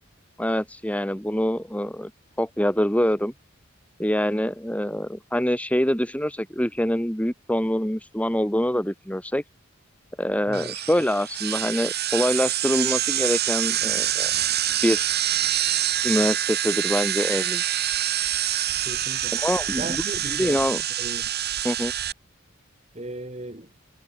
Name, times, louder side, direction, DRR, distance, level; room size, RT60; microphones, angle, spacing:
voice 1, 0.4-2.1 2.4-3.3 4.0-9.4 10.2-14.3 14.8-15.1 16.0-17.6 19.3-20.0 20.3-20.8 21.6-21.9, equal, 5° left, 2.6 m, -25 dB
sound 1, 10.5-22.1, right 12 dB, 55° right, 5.8 m, -26 dB
voice 2, 18.9-19.3 19.8-20.7 21.0-21.3 23.0-23.7, right 1 dB, 35° right, 3.8 m, -36 dB
head